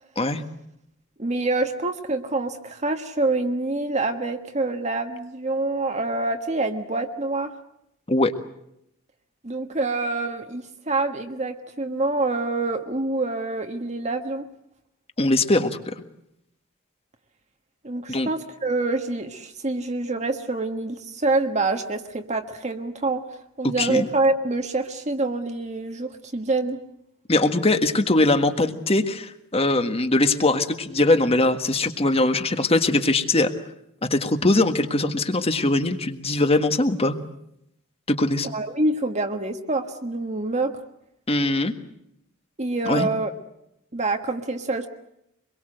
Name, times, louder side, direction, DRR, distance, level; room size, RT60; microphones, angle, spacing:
voice 1, 1.2-7.5 9.4-14.5 17.8-23.2 23.6-26.8 38.5-40.8 42.6-43.3 43.9-44.9, right 2 dB, 35° right, 5 dB, 1.5 m, -26 dB
voice 2, 15.2-15.9 18.1-18.3 23.6-24.1 27.3-33.5 34.0-37.2 38.1-38.5 41.3-41.7 42.8-43.1, left 2 dB, 30° left, 9 dB, 1.6 m, -21 dB
25.5 x 22.0 x 7.9 m, 0.79 s
head